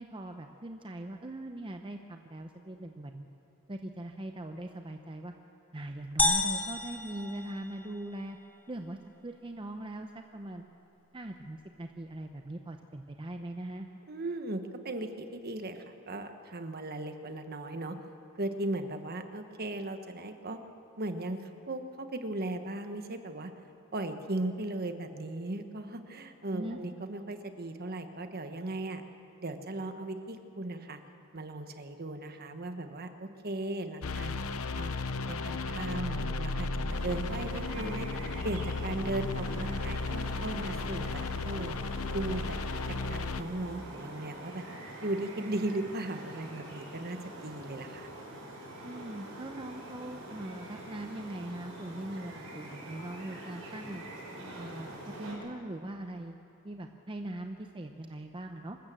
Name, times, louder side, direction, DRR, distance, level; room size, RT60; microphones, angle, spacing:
voice 1, 0.0-3.3 3.7-5.3 5.7-8.4 8.7-10.6 11.1-13.9 26.5-26.8 48.8-54.0 54.6-54.9 55.2-56.4 56.6-58.8, right 1 dB, 25° right, 5 dB, 0.7 m, -41 dB
sound 1, 6.2-8.1, left 2 dB, 10° left, 1.1 m, -30 dB
voice 2, 14.1-18.0 18.4-20.6 21.0-23.5 23.9-29.0 29.4-31.0 31.3-34.3 34.8-38.1 38.4-41.7 42.1-44.6 45.0-48.1, right 2 dB, 45° right, 7 dB, 1.2 m, -37 dB
sound 2, 34.0-43.4, left 3 dB, 80° left, 0.8 m, -34 dB
sound 3, 36.9-55.3, right 1 dB, 75° right, 5.8 m, -45 dB
25.5 x 13.5 x 7.6 m, 2.7 s
head